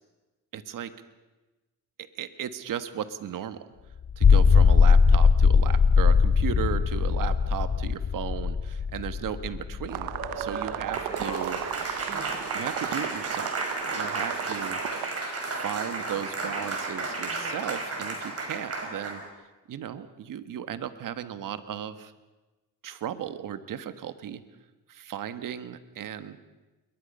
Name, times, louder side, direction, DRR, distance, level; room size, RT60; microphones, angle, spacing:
voice 1, 0.5-0.9 2.1-3.6 4.2-10.1 10.4-11.6 12.5-13.5 13.9-14.8 15.4-19.2 19.7-22.1 22.8-24.4 24.9-26.4, right 9 dB, 60° right, 10 dB, 1.6 m, -35 dB
sound 1, 4.0-10.5, left 5 dB, 30° left, 0.8 m, -20 dB
sound 2, 9.9-15.1, right 13 dB, 90° right, 1.1 m, -35 dB
Applause, 10.1-19.3, right 3 dB, 40° right, 5.6 m, -33 dB
28.0 x 22.5 x 5.6 m, 1.1 s
cardioid pair, 100°, 36 cm